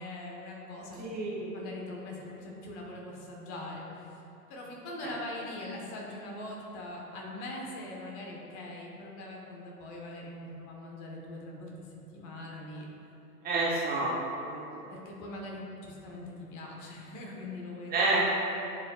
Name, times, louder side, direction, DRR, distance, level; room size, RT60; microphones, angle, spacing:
voice 1, 0.0-1.0 1.5-3.8 4.5-12.9 14.9-18.2, left 1 dB, 35° left, -2 dB, 1.3 m, -42 dB
voice 2, 1.0-1.5 13.4-14.6 17.9-18.2, right 2 dB, 20° right, -5 dB, 0.9 m, -29 dB
11.0 x 5.0 x 2.4 m, 2.8 s
figure-of-eight pair, 100°, 48 cm